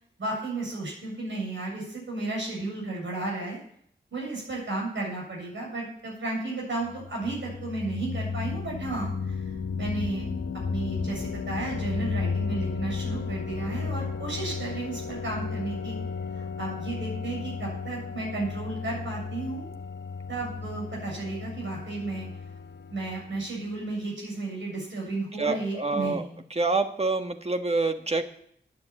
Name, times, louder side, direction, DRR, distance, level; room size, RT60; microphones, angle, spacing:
voice 1, 0.2-3.6 4.1-9.5 9.8-10.4 10.7-16.0 16.4-19.7 20.3-22.3 22.9-26.3, right 2 dB, 75° right, -2 dB, 7.3 m, -33 dB
sound 1, 6.8-23.6, left 5 dB, 60° left, 1.0 m, -34 dB
voice 2, 25.4-26.2 26.5-28.2, right 3 dB, 30° right, 6 dB, 1.5 m, -26 dB
10.0 x 9.8 x 8.8 m, 0.66 s
wide cardioid pair, 65°, 20 cm